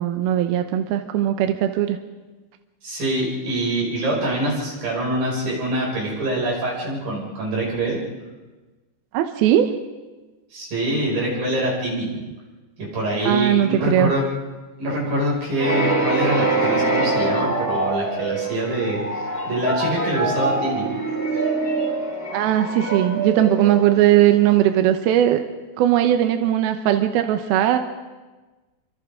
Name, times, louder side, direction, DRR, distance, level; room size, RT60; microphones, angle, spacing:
voice 1, 0.0-2.0 9.1-9.7 13.2-14.1 22.3-25.4 25.8-27.8, right 11 dB, 75° right, 7 dB, 2.3 m, -19 dB
voice 2, 2.8-8.0 10.5-12.1 12.8-14.2 14.8-19.0 19.5-20.8, right 1 dB, 50° right, -4 dB, 7.5 m, -24 dB
sound 1, 15.6-24.3, right 2 dB, 5° left, 3.4 m, -24 dB
29.0 x 25.5 x 3.7 m, 1.2 s
omnidirectional pair, 5.2 m